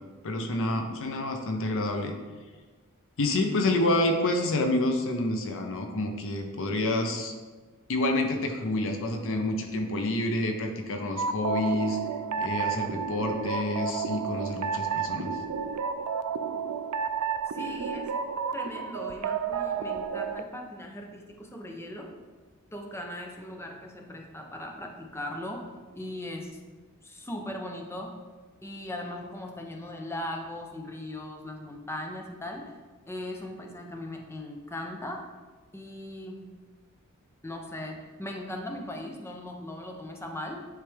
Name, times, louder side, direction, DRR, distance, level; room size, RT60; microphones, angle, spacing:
voice 1, 0.2-2.1 3.2-7.3 7.9-12.0 12.4-15.4, left 2 dB, 60° left, 4 dB, 0.7 m, -28 dB
sound 1, 11.2-20.4, right 6 dB, 85° right, 0.3 m, -31 dB
voice 2, 17.5-18.2 18.5-22.2 22.7-26.6 27.0-28.2 28.6-32.8 33.1-35.3 35.7-36.6 37.4-40.7, left 1 dB, 10° left, 2 dB, 0.7 m, -39 dB
9.8 x 3.3 x 3.4 m, 1.3 s
head